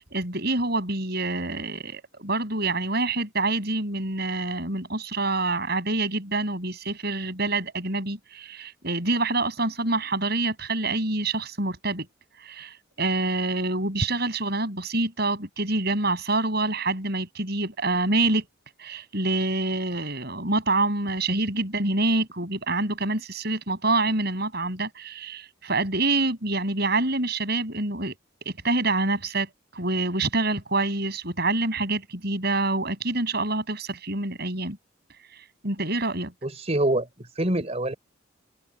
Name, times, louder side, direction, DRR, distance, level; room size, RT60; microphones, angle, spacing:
voice 1, 0.0-12.1 12.4-18.5 18.8-28.1 28.5-34.8 35.6-36.3, right 2 dB, 55° right, 7.3 m, -26 dB
voice 2, 36.4-37.9, right 1 dB, 35° right, 4.1 m, -26 dB
head